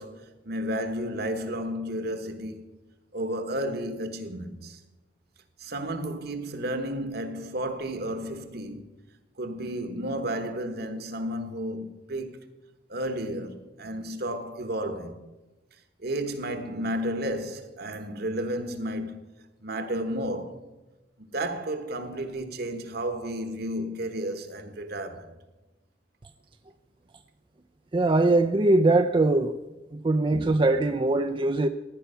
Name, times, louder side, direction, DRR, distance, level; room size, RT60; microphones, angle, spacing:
voice 1, 0.0-2.8 3.1-4.8 5.6-8.9 9.4-12.5 12.9-15.2 16.0-19.4 19.6-20.6 21.2-25.3, right 1 dB, 60° right, 1.3 m, -32 dB
voice 2, 27.9-29.5 29.9-31.7, right 2 dB, 25° right, 0.5 m, -22 dB
16.0 x 10.0 x 5.6 m
head